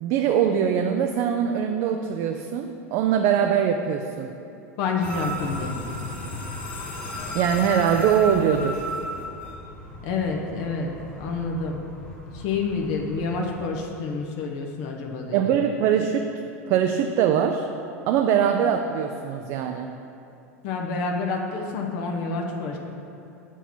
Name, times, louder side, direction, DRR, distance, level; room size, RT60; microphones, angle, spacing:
voice 1, 0.0-4.3 7.3-8.8 15.3-16.3 16.7-17.7 18.1-19.9, right 8 dB, 50° right, 5 dB, 0.4 m, -22 dB
voice 2, 4.8-5.8 10.0-10.9 11.2-11.8 12.3-15.6 20.6-22.8, left 4 dB, 55° left, 0 dB, 0.8 m, -28 dB
sound 1, 5.0-13.7, equal, 15° left, 1.4 m, -35 dB
6.8 x 4.5 x 5.9 m, 2.7 s
hypercardioid pair, 90°, 8 cm